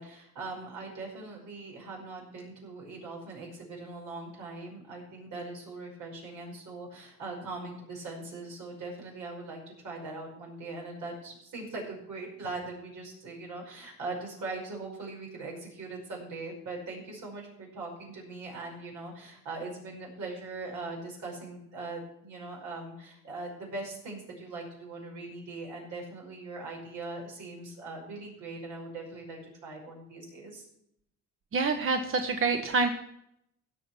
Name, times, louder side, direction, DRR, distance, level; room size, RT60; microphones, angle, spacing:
voice 1, 0.0-30.6, right 3 dB, 80° right, -1 dB, 5.7 m, -41 dB
voice 2, 31.5-32.9, right 4 dB, 45° right, 6 dB, 1.1 m, -26 dB
16.5 x 6.2 x 5.8 m, 0.76 s
cardioid pair, 90°, 30 cm